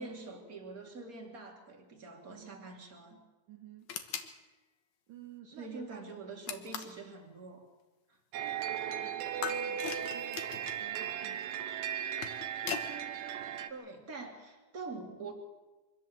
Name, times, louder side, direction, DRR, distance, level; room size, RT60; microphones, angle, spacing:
voice 1, 0.0-3.2 5.5-7.7 8.1-8.2 13.4-15.3, right 3 dB, 25° right, 2 dB, 2.2 m, -45 dB
voice 2, 2.2-2.7 3.5-3.9 5.1-6.3 8.4-11.6, right 8 dB, 60° right, 1 dB, 2.6 m, -53 dB
sound 1, 3.9-4.3 6.5-7.0 9.4-10.8 11.9-12.9, left 8 dB, 70° left, 1.7 m, -39 dB
sound 2, 8.3-13.7, right 9 dB, 80° right, 2.0 m, -37 dB
24.0 x 15.0 x 7.6 m, 1.2 s
omnidirectional pair, 5.2 m